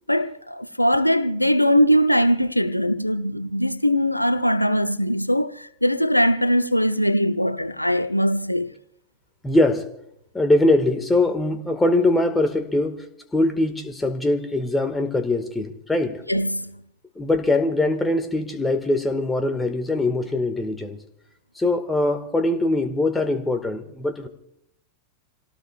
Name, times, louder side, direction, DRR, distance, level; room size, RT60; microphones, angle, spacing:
voice 1, 0.1-8.7 16.3-16.8, equal, 90° left, 0.7 m, -21 dB
voice 2, 9.4-9.9 10.3-13.0 13.3-16.2 17.2-21.0 21.6-24.3, left 2 dB, 10° left, 1.9 m, -22 dB
28.5 x 18.0 x 2.5 m
figure-of-eight pair, 90°, 0 cm